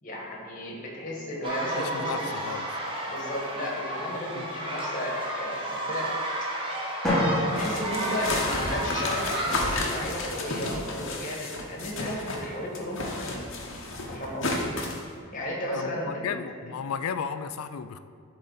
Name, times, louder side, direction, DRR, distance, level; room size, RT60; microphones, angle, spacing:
voice 1, 0.0-2.3 2.8-6.1 7.5-13.4 14.1-14.6 15.3-16.3, left 1 dB, 35° left, -3 dB, 1.5 m, -34 dB
sound 1, 1.4-9.8, right 1 dB, 25° right, 0.9 m, -32 dB
voice 2, 1.8-2.6 4.4-4.5 15.7-18.0, left 7 dB, 80° left, 11 dB, 0.4 m, -34 dB
Drum, 7.0-9.0, equal, ahead, 1.7 m, -29 dB
sound 2, 7.6-12.5 12.7-15.0, left 2 dB, 60° left, 0.9 m, -32 dB
10.5 x 3.9 x 4.0 m, 2.2 s
head